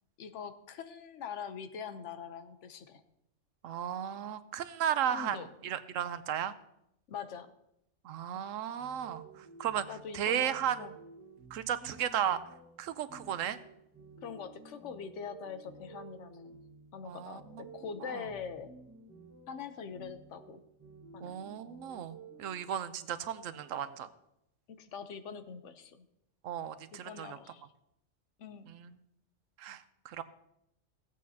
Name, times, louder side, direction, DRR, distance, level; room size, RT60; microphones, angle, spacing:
voice 1, 0.2-3.0 5.1-5.5 7.1-7.5 9.9-10.9 14.2-16.6 16.9-18.7 19.5-20.6 21.1-21.3 24.7-26.1 26.9-27.6 28.4-28.7, left 6 dB, 70° left, 10 dB, 1.1 m, -43 dB
voice 2, 3.6-6.5 8.0-9.2 9.6-9.9 10.1-10.8 11.5-12.4 12.8-13.6 17.0-17.6 18.1-18.2 21.2-24.1 26.4-27.4 28.7-28.9 29.6-30.2, right 9 dB, 90° right, 13 dB, 1.0 m, -35 dB
sound 1, 8.8-22.5, right 4 dB, 15° right, 1.5 m, -53 dB
16.5 x 8.3 x 2.8 m, 0.80 s
omnidirectional pair, 1.3 m